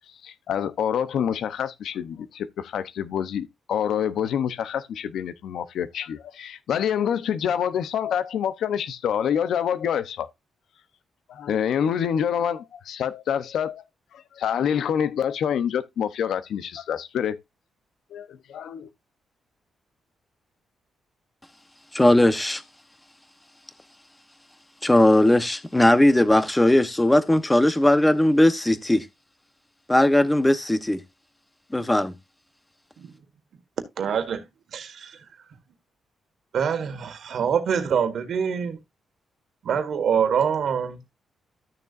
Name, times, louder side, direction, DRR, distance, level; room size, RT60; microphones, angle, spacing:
voice 1, 0.2-10.3 11.3-13.8 14.1-17.4 18.1-18.9, left 8 dB, 75° left, 0.8 m, -27 dB
voice 2, 21.9-22.6 24.8-29.1 29.9-31.0 31.7-32.1, left 1 dB, 10° left, 1.0 m, -18 dB
voice 3, 34.0-34.4 34.7-35.2 36.5-38.8 39.6-41.0, right 7 dB, 60° right, 1.7 m, -25 dB
13.5 x 6.7 x 2.5 m
cardioid pair, 140°, 0 cm